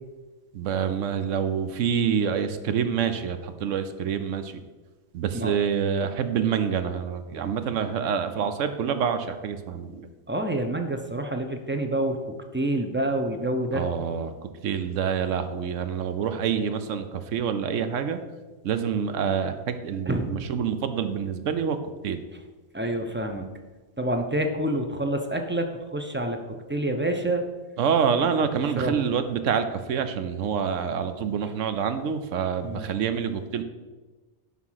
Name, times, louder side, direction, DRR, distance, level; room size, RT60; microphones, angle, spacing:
voice 1, 0.5-4.4 5.1-10.1 13.7-14.3 14.6-18.2 18.6-19.5 19.8-21.8 22.0-22.2 27.8-33.6, right 7 dB, 70° right, 10 dB, 1.0 m, -27 dB
voice 2, 10.3-13.9 20.0-20.3 22.3-22.4 22.7-23.5 24.0-27.4 28.6-29.1 32.6-32.9, right 1 dB, 15° right, 5 dB, 0.4 m, -28 dB
11.0 x 3.9 x 5.7 m, 1.3 s
omnidirectional pair, 1.4 m